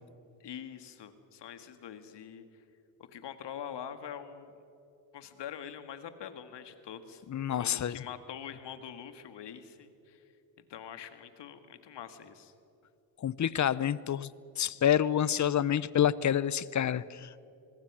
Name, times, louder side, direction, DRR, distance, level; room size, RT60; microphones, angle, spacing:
voice 1, 0.4-2.6 3.0-4.5 5.1-7.2 7.6-10.2 10.7-12.5, left 8 dB, 60° left, 10 dB, 1.9 m, -44 dB
voice 2, 7.3-8.0 13.2-14.3 14.6-17.3, left 10 dB, 40° left, 19 dB, 0.8 m, -28 dB
26.5 x 21.0 x 6.2 m, 2.7 s
supercardioid pair, 70°, 46 cm